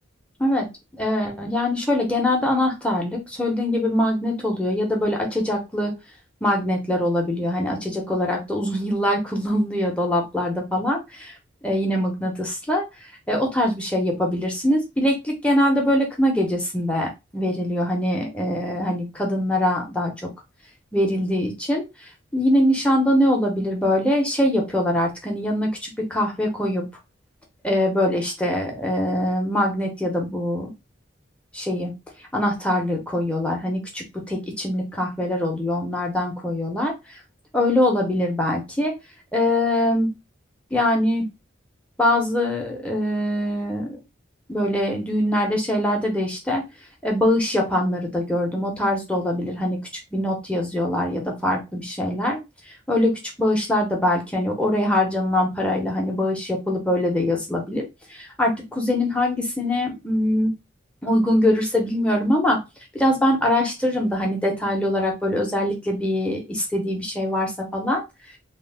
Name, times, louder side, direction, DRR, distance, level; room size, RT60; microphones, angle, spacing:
voice 1, 1.0-5.9 6.4-11.3 11.6-12.8 13.3-17.1 17.3-20.3 20.9-26.9 27.6-30.7 31.5-31.9 32.3-37.2 37.5-38.9 39.3-40.1 40.7-41.3 42.0-44.0 44.5-46.6 47.0-52.4 52.7-57.8 58.1-60.5 61.0-62.6 62.9-68.0, left 1 dB, 5° left, 0 dB, 0.7 m, -23 dB
2.8 x 2.0 x 3.3 m, 0.24 s
head